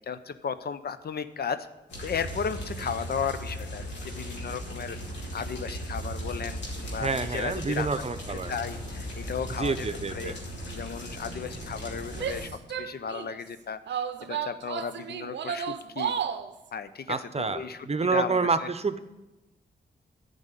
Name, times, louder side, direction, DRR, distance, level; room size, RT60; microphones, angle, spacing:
voice 1, 0.0-1.7 2.0-5.0 5.3-8.0 8.5-9.9 10.1-10.3 10.7-16.1 16.7-18.7, left 6 dB, 60° left, 12 dB, 0.7 m, -35 dB
sound 1, 1.9-12.5, equal, 80° left, 2.5 m, -37 dB
voice 2, 7.0-8.5 9.6-10.4 17.1-19.0, right 4 dB, 35° right, 11 dB, 0.8 m, -28 dB
Female speech woman speaking / Yell, 12.1-13.4 13.9-16.5, right 8 dB, 75° right, 0.6 m, -33 dB
10.5 x 5.3 x 8.2 m, 1.0 s
supercardioid pair, 45°, 18 cm